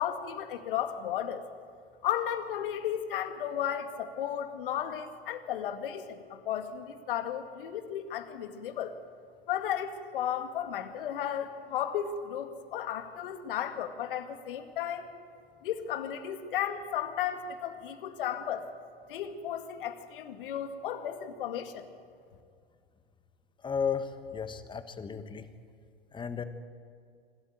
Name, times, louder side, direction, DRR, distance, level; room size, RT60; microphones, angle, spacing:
voice 1, 0.0-1.4 2.0-8.9 9.5-15.1 15.6-18.6 19.1-21.9, left 10 dB, 60° left, 8 dB, 2.1 m, -34 dB
voice 2, 23.6-25.5 26.1-26.4, left 6 dB, 15° left, 11 dB, 1.4 m, -34 dB
26.0 x 13.0 x 9.2 m, 2.2 s
hypercardioid pair, 100°, 30 cm